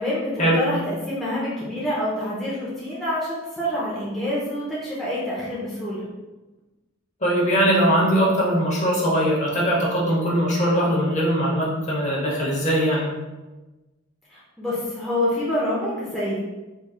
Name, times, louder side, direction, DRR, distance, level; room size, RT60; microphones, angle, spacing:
voice 1, 0.0-6.0 14.3-16.4, left 1 dB, ahead, -9 dB, 0.6 m, -27 dB
voice 2, 7.2-13.1, equal, 35° left, -4 dB, 0.9 m, -21 dB
3.7 x 3.1 x 2.3 m, 1.1 s
head